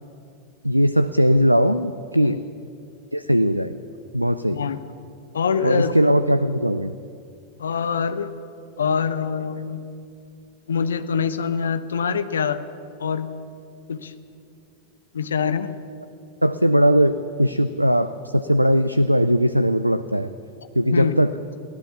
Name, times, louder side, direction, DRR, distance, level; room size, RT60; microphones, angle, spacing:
voice 1, 0.6-2.4 3.1-3.7 4.1-4.6 5.6-6.9 16.4-20.3 20.8-21.3, equal, 90° right, 13 dB, 0.5 m, -19 dB
voice 2, 4.5-4.8 5.3-5.9 7.6-8.3 8.8-9.8 10.7-12.6 13.0-13.3 13.9-14.1 15.1-15.7 20.9-21.2, left 6 dB, 70° left, 11 dB, 1.0 m, -24 dB
22.5 x 16.5 x 7.2 m, 2.5 s
figure-of-eight pair, 90°, 0 cm